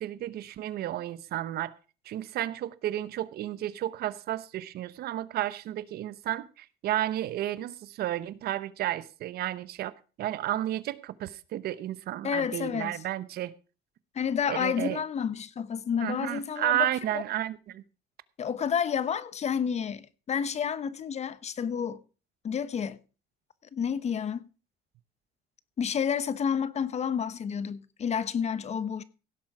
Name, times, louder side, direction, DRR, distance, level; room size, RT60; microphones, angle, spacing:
voice 1, 0.0-1.7 2.1-9.9 10.2-13.5 14.5-15.0 16.0-17.8, right 13 dB, 70° right, 0.9 m, -32 dB
voice 2, 12.2-13.0 14.1-16.9 17.1-17.2 18.4-22.0 22.4-23.0 23.7-24.5 25.8-29.0, left 7 dB, 40° left, 1.0 m, -30 dB
16.5 x 7.5 x 4.8 m
cardioid pair, 110°, 17 cm